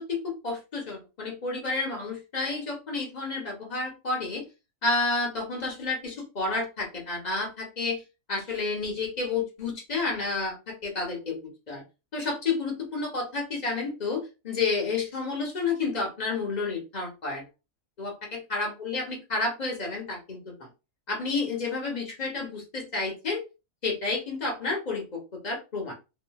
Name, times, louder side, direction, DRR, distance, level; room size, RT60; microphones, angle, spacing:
voice 1, 0.0-4.4 4.8-8.0 8.3-11.4 11.7-11.8 12.1-17.4 18.0-20.7 21.1-23.4 23.8-25.9, left 3 dB, 35° left, -1 dB, 0.9 m, -30 dB
3.0 x 2.7 x 2.3 m, 0.29 s
omnidirectional pair, 1.6 m